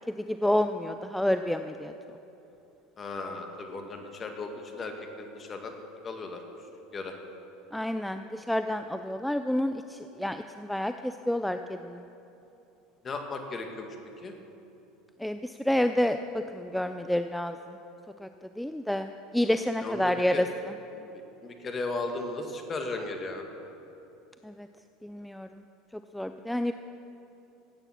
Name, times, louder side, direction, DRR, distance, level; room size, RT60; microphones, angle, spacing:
voice 1, 0.3-1.9 7.7-12.0 15.2-17.6 18.2-18.3 18.6-20.7 24.4-24.7 25.0-25.6 26.1-26.7, left 1 dB, 5° left, 8 dB, 0.5 m, -29 dB
voice 2, 3.0-5.7 6.0-6.4 6.9-7.1 13.0-14.0 14.2-14.3 19.8-20.4 20.9-21.1 21.4-23.5, left 3 dB, 30° left, 4 dB, 2.0 m, -36 dB
16.0 x 8.9 x 5.9 m, 2.9 s
hypercardioid pair, 85°, 0 cm